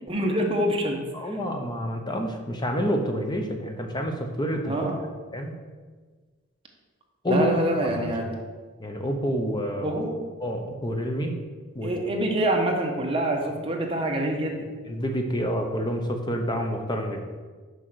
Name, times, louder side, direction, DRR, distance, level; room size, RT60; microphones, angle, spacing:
voice 1, 0.1-1.4 4.7-5.0 7.3-8.2 9.8-10.1 11.8-14.7, right 1 dB, 25° right, 1 dB, 1.1 m, -26 dB
voice 2, 1.1-4.9 5.3-5.5 7.2-7.5 8.0-8.1 8.8-10.0 10.4-11.3 11.7-11.9 14.9-17.2, equal, 20° left, 3 dB, 0.8 m, -28 dB
6.4 x 5.4 x 6.2 m, 1.4 s
head